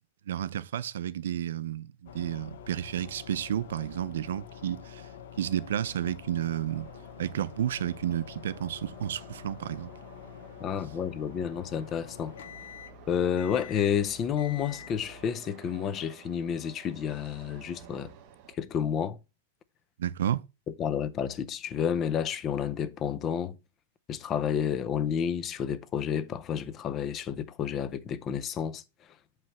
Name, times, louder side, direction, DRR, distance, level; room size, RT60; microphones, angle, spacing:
voice 1, 0.3-5.1 5.4-6.9 7.2-9.9 20.0-20.4, right 10 dB, 80° right, 0.5 m, -31 dB
sound 1, 2.1-15.3, left 8 dB, 70° left, 1.0 m, -47 dB
sound 2, 6.7-18.6, right 8 dB, 40° right, 1.0 m, -53 dB
voice 2, 10.6-12.3 13.1-18.1 18.6-19.2 20.7-23.5 24.1-28.8, left 8 dB, 20° left, 0.5 m, -30 dB
7.7 x 3.2 x 5.8 m
supercardioid pair, 165°, 0 cm